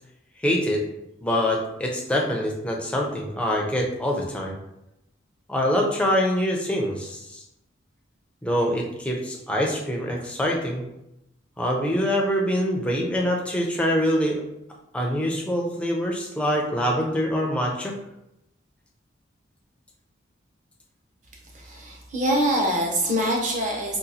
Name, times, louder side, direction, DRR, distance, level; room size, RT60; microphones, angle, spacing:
voice 1, 0.4-0.8 1.2-4.6 5.5-7.4 8.4-10.8 11.6-14.4 14.9-18.0, equal, 5° left, 0 dB, 0.4 m, -24 dB
voice 2, 21.5-24.0, right 1 dB, 40° right, -1 dB, 0.7 m, -24 dB
3.8 x 2.3 x 2.7 m, 0.85 s
head